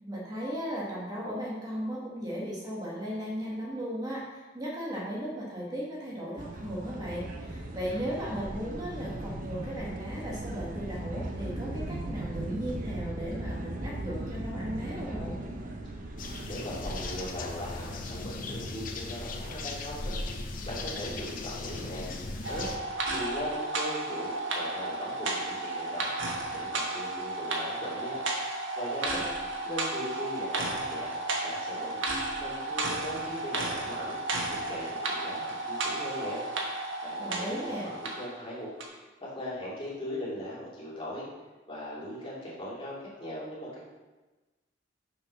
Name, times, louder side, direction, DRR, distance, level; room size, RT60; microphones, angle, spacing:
voice 1, 0.0-15.3 37.2-37.9, equal, 20° right, -5 dB, 1.6 m, -36 dB
sound 1, 6.4-17.3, right 1 dB, 45° right, 0.8 m, -38 dB
sound 2, 16.2-22.8, left 2 dB, 45° left, 0.8 m, -37 dB
voice 2, 16.5-20.2 20.6-22.2 22.4-22.7 23.1-26.1 26.5-28.2 28.8-29.2 29.6-31.1 31.4-32.0 32.4-34.2 34.5-36.4 37.0-41.3 41.7-43.9, left 1 dB, 30° left, -7 dB, 2.7 m, -39 dB
sound 3, 22.4-38.3 38.8-38.9, right 2 dB, 85° right, 1.4 m, -33 dB
6.9 x 5.5 x 5.7 m, 1.2 s
head